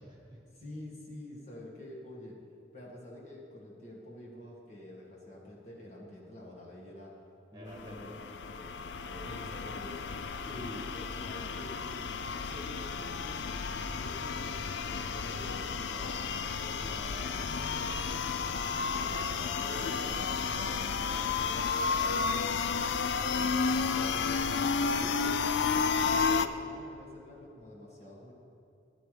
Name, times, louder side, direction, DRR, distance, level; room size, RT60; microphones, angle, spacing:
voice 1, 0.0-0.4 7.5-10.0 19.7-23.5, right 1 dB, 25° right, -1 dB, 1.4 m, -50 dB
voice 2, 0.5-2.4 2.7-7.1 7.5-8.4 9.2-10.0 10.5-13.6 14.0-19.9 23.9-25.3 25.7-28.3, left 1 dB, 35° left, -4 dB, 1.8 m, -47 dB
sound 1, 7.7-26.5, left 5 dB, 70° left, 0.4 m, -32 dB
13.5 x 10.5 x 3.4 m, 2.7 s
head